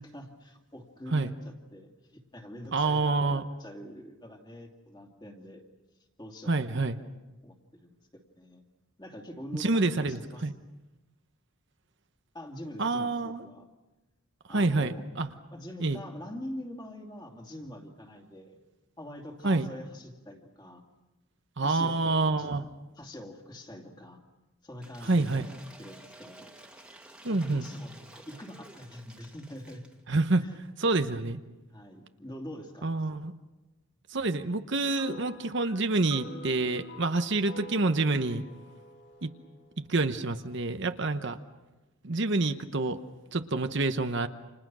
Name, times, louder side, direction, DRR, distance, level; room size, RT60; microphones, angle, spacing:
voice 1, 0.0-5.6 6.2-7.1 7.4-8.6 9.0-10.5 12.3-13.7 14.5-15.0 15.5-18.6 19.0-20.8 21.6-22.6 23.0-24.2 24.6-27.0 27.3-29.8 30.4-30.5 31.7-33.1, left 1 dB, 20° left, 2 dB, 2.7 m, -45 dB
voice 2, 2.7-3.4 6.5-7.0 9.5-10.5 12.8-13.4 14.5-15.3 15.8-16.0 19.4-19.7 21.6-22.7 25.0-25.5 27.2-27.7 30.1-31.4 32.8-33.3 34.1-38.4 39.2-39.3 39.8-41.4 42.0-43.0 43.3-44.3, right 3 dB, 55° right, 8 dB, 1.0 m, -27 dB
Cheering / Applause / Crowd, 24.8-30.0, right 1 dB, 5° right, 2.0 m, -52 dB
sound 1, 34.9-40.5, equal, 65° left, 2.5 m, -48 dB
29.5 x 27.5 x 6.2 m, 1.1 s
head